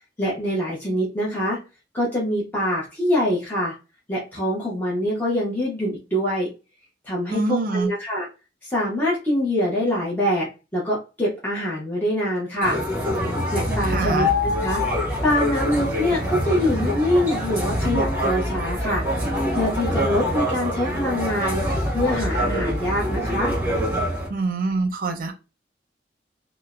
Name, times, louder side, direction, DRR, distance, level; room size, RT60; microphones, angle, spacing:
voice 1, 0.2-1.6 1.9-3.7 4.1-6.5 7.0-8.3 8.6-12.8 13.5-14.8 15.2-19.0 19.5-21.6 21.9-23.5, left 1 dB, 10° left, -6 dB, 0.6 m, -24 dB
voice 2, 7.3-7.9 13.8-14.3 24.3-25.3, right 3 dB, 50° right, 4 dB, 0.5 m, -25 dB
sound 1, 12.6-24.3, equal, 10° right, 1.0 m, -25 dB
3.1 x 2.0 x 2.3 m, 0.30 s
head